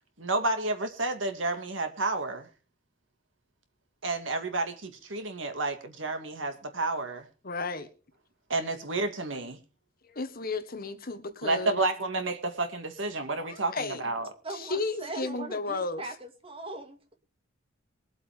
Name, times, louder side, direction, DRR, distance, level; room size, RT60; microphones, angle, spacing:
voice 1, 0.2-2.5 4.0-7.3 8.5-9.6 11.4-14.3, right 2 dB, 75° right, 2.2 m, -30 dB
voice 2, 7.4-7.9 10.0-11.9 13.5-14.0 14.5-16.0, left 3 dB, 50° left, 1.5 m, -33 dB
voice 3, 14.4-17.1, right 2 dB, 30° right, 2.2 m, -40 dB
22.0 x 8.2 x 3.6 m
head